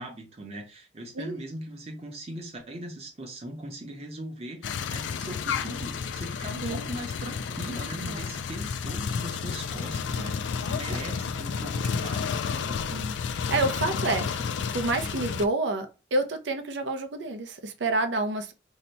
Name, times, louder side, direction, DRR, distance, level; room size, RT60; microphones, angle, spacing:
voice 1, 0.0-12.8, right 1 dB, 35° right, 0.7 m, -40 dB
sound 1, 4.6-15.4, left 6 dB, 80° left, 0.3 m, -31 dB
voice 2, 13.5-18.5, right 2 dB, 80° right, 0.5 m, -29 dB
2.8 x 2.1 x 4.0 m
head